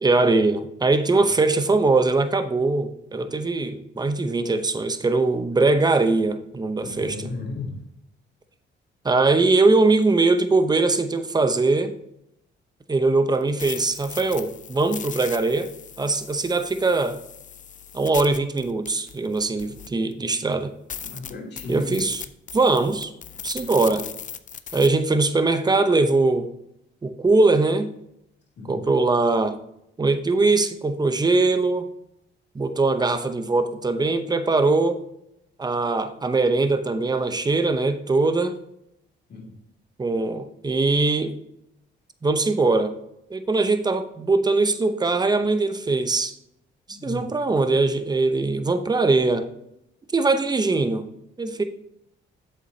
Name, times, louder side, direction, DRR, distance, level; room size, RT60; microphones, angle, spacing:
voice 1, 0.0-7.3 9.0-11.9 12.9-15.7 16.0-17.2 17.9-20.7 21.7-22.2 22.5-23.1 23.4-24.1 24.7-26.5 27.0-27.9 28.7-29.6 30.0-31.9 32.5-35.0 35.6-38.5 40.0-41.4 42.2-42.9 43.3-46.3 46.9-49.5 50.1-51.1 51.4-51.6, right 3 dB, 20° right, 9 dB, 0.8 m, -21 dB
voice 2, 6.8-7.7 21.0-21.9 28.6-28.8 39.3-39.5 46.9-47.3, left 3 dB, 55° left, -1 dB, 2.6 m, -34 dB
sound 1, 13.3-20.1 20.5-20.6 20.9-24.9, left 8 dB, 40° left, 0.6 m, -38 dB
8.5 x 7.1 x 2.8 m, 0.80 s
cardioid pair, 90°, 20 cm